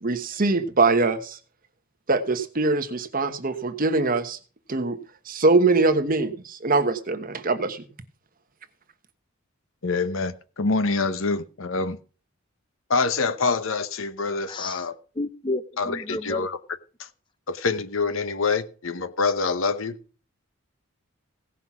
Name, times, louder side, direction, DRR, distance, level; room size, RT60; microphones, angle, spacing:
voice 1, 0.0-1.4 2.1-4.4 4.7-5.0 5.3-7.8, right 3 dB, 45° right, 10 dB, 1.2 m, -23 dB
voice 2, 9.8-12.0 12.9-14.9 15.8-16.6 17.5-20.0, left 4 dB, 70° left, 13 dB, 0.9 m, -26 dB
voice 3, 14.5-14.9 15.2-16.5, left 2 dB, 25° left, 13 dB, 0.7 m, -31 dB
16.5 x 5.8 x 6.0 m, 0.38 s
head